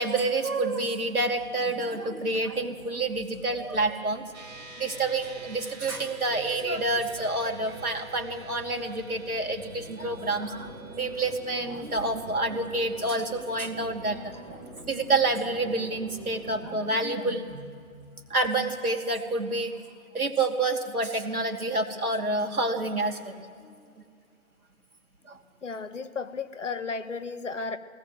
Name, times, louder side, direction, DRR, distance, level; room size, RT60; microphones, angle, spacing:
voice 1, 0.0-4.2 4.8-19.7 20.1-23.4 25.3-25.4, right 2 dB, 80° right, 3 dB, 2.8 m, -28 dB
sound 1, 2.5-16.7, right 1 dB, 5° right, 1.1 m, -47 dB
sound 2, 4.3-17.9, right 1 dB, 30° right, 3.0 m, -48 dB
voice 2, 23.6-23.9 25.6-27.8, left 4 dB, 60° left, 11 dB, 1.6 m, -34 dB
21.5 x 18.5 x 7.9 m, 2.3 s
figure-of-eight pair, 155°, 43 cm